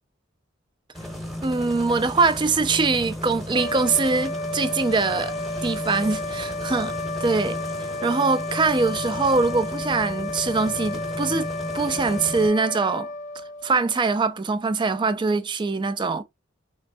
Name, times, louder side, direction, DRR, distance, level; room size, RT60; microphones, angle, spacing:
sound 1, 0.9-12.5, left 1 dB, ahead, 0.9 m, -35 dB
voice 1, 1.4-5.3 5.6-7.6 8.0-11.5 11.7-13.1 13.6-16.2, right 4 dB, 25° right, 0.4 m, -23 dB
sound 2, 3.4-14.1, left 2 dB, 35° left, 0.5 m, -32 dB
3.4 x 3.1 x 2.6 m
head